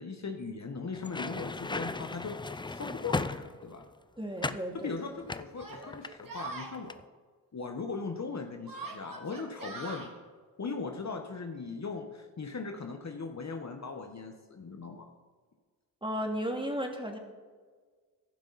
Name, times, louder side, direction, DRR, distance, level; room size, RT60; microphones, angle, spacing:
voice 1, 0.0-2.4 2.6-3.9 4.7-7.0 7.5-10.1 10.6-15.1, left 4 dB, 40° left, 4 dB, 1.3 m, -39 dB
sound 1, 0.9-3.9 4.4-4.7 5.3-6.5 6.7-7.0, left 3 dB, 10° left, 0.5 m, -36 dB
Yell, 3.3-3.4 4.3-4.4 5.5-6.7 8.6-10.1, right 3 dB, 50° right, 3.1 m, -42 dB
voice 2, 4.2-4.9 16.0-17.2, equal, 10° right, 2 dB, 2.5 m, -34 dB
15.0 x 11.5 x 4.2 m, 1.5 s
supercardioid pair, 50°, 43 cm